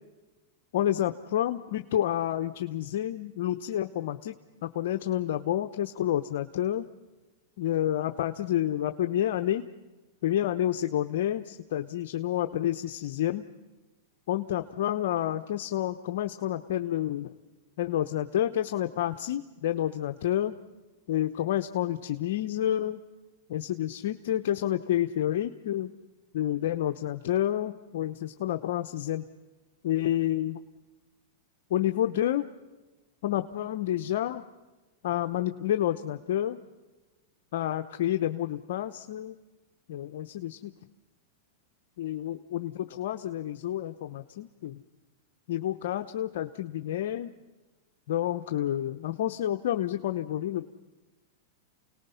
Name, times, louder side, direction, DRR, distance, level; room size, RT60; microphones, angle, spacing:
voice 1, 0.7-4.4 4.6-6.9 7.6-9.7 10.2-13.5 14.3-17.3 17.8-20.5 21.1-23.0 23.5-25.9 26.3-29.3 29.8-30.6 31.7-32.5 33.2-34.4 35.0-36.6 37.5-39.4 39.9-40.7 42.0-44.8 45.5-47.3 48.1-50.7, left 12 dB, 70° left, 6 dB, 0.8 m, -29 dB
29.5 x 19.0 x 5.7 m, 1.2 s
hypercardioid pair, 130°, 0 cm